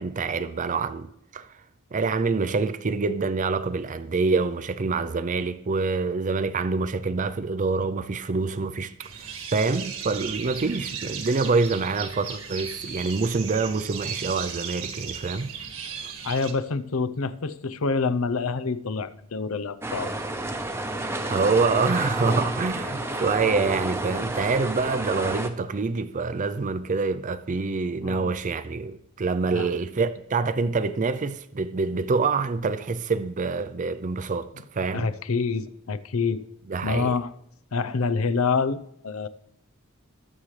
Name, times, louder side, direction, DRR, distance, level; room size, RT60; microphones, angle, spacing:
voice 1, 0.0-1.6 1.9-15.5 21.2-35.1 36.7-37.1, right 4 dB, 35° right, 0.5 m, -26 dB
sound 1, 9.0-16.5, right 7 dB, 75° right, 1.6 m, -36 dB
voice 2, 16.2-20.1 22.8-23.2 28.0-28.3 29.5-29.7 34.9-36.5 36.8-37.3 37.7-39.3, left 4 dB, 70° left, 0.7 m, -27 dB
sound 2, 19.8-25.5, right 2 dB, 10° right, 0.8 m, -30 dB
21.5 x 7.4 x 3.3 m
head